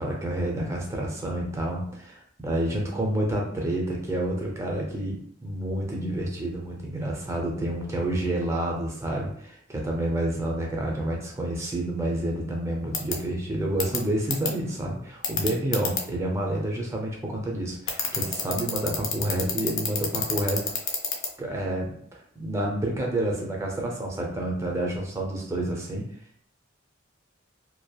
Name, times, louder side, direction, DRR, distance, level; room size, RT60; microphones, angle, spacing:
voice 1, 0.0-1.9 2.4-20.6 21.4-26.1, right 1 dB, 15° right, -1 dB, 0.4 m, -29 dB
sound 1, 12.9-13.1 13.8-14.0 14.3-14.5 15.2-16.0 17.9-21.3, left 6 dB, 70° left, 0.5 m, -26 dB
2.7 x 2.2 x 2.2 m, 0.66 s
head